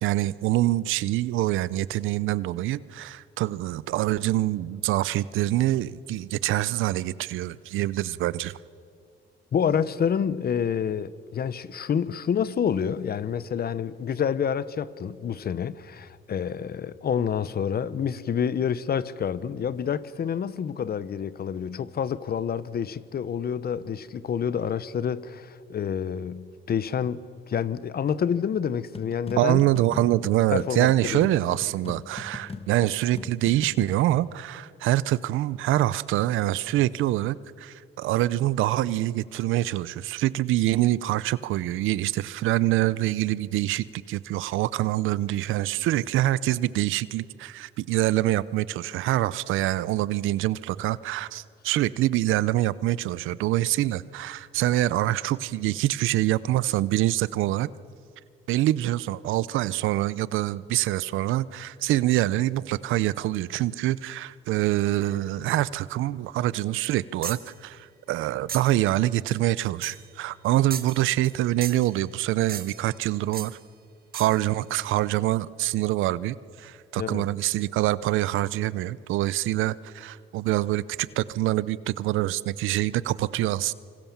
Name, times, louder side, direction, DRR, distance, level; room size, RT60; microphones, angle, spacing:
voice 1, 0.0-8.5 29.4-57.7 58.5-73.6 74.1-83.7, right 15 dB, 90° right, 0.7 m, -25 dB
voice 2, 9.5-27.2 27.5-29.7 30.5-31.3 77.0-77.3, left 7 dB, 50° left, 1.0 m, -28 dB
sound 1, 28.9-34.1, left 4 dB, 30° left, 1.4 m, -40 dB
sound 2, 67.2-67.5 68.5-68.8 69.8-70.1 70.7-71.4 71.6-71.9 72.5-72.9 73.3-73.6 74.1-74.4, right 7 dB, 50° right, 1.6 m, -37 dB
27.0 x 25.5 x 7.3 m
cardioid pair, 90°, 20 cm